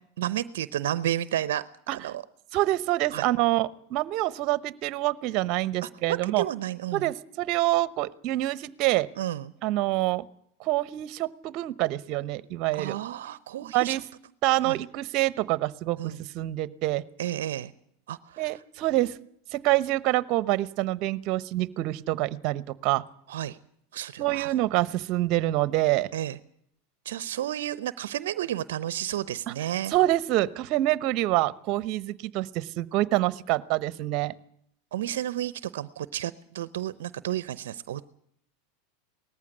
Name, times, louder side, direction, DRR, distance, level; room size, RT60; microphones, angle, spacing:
voice 1, 0.2-1.6 1.9-2.2 3.1-3.3 5.8-5.9 6.4-7.0 9.2-9.5 12.7-14.0 14.6-14.8 16.0-16.2 17.2-17.7 18.1-18.6 23.3-23.6 23.9-24.5 26.1-26.4 27.0-29.9 34.9-38.0, right 12 dB, 75° right, 16 dB, 0.7 m, -32 dB
voice 2, 2.5-6.4 6.9-9.1 9.6-10.2 10.6-13.0 13.6-14.0 14.4-17.0 18.4-19.2 19.5-23.0 24.2-26.1 29.5-29.6 29.9-34.3, right 16 dB, 50° right, 17 dB, 1.0 m, -26 dB
19.0 x 14.5 x 9.7 m, 0.70 s
hypercardioid pair, 100°, 0 cm